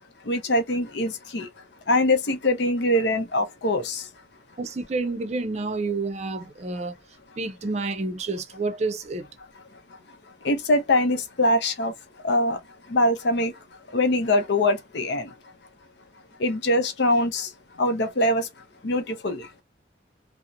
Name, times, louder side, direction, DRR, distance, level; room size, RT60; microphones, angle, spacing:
voice 1, 0.3-1.5 1.9-4.0 10.4-11.9 12.2-12.6 12.9-13.5 13.9-15.3 16.4-17.5 17.8-18.5 18.8-19.5, left 1 dB, 70° left, 0.6 m, -23 dB
voice 2, 4.6-6.9 7.4-9.2, right 3 dB, 35° right, 0.4 m, -29 dB
2.8 x 2.0 x 2.3 m
head